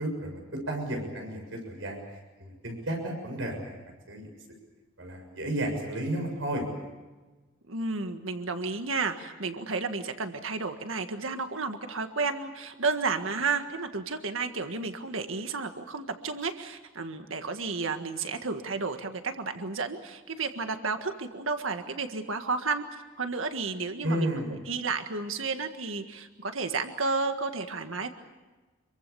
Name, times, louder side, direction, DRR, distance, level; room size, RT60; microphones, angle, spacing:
voice 1, 0.0-2.0 2.4-3.8 4.1-4.3 5.0-6.6 24.0-24.6, right 1 dB, 70° right, 3 dB, 6.9 m, -32 dB
voice 2, 7.7-24.3 24.7-28.1, right 4 dB, 85° right, 7 dB, 1.7 m, -32 dB
27.0 x 23.5 x 7.0 m, 1.2 s
head